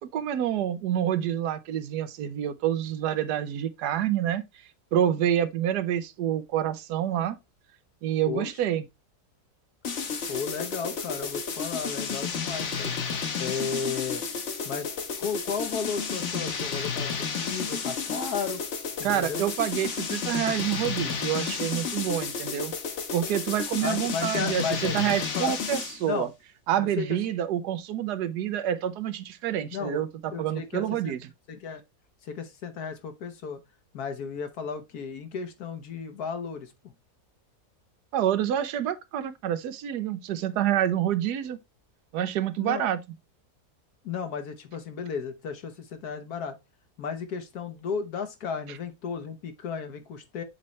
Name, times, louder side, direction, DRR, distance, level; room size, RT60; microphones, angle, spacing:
voice 1, 0.0-4.4 4.9-7.4 8.0-8.8 10.2-10.3 19.0-22.7 23.1-26.3 26.7-31.2 38.1-41.6 42.1-43.0, right 11 dB, 80° right, 1.3 m, -27 dB
sound 1, 9.8-26.1, left 5 dB, 50° left, 1.2 m, -32 dB
voice 2, 10.3-13.0 13.4-14.2 14.6-14.9 15.2-18.6 19.0-19.5 23.8-25.6 26.1-26.3 26.8-27.2 29.7-30.0 30.3-31.1 31.5-31.8 32.2-33.6 33.9-36.9 42.6-42.9 44.0-46.5 47.0-50.4, left 6 dB, 75° left, 1.5 m, -34 dB
7.5 x 4.1 x 3.1 m
omnidirectional pair, 1.7 m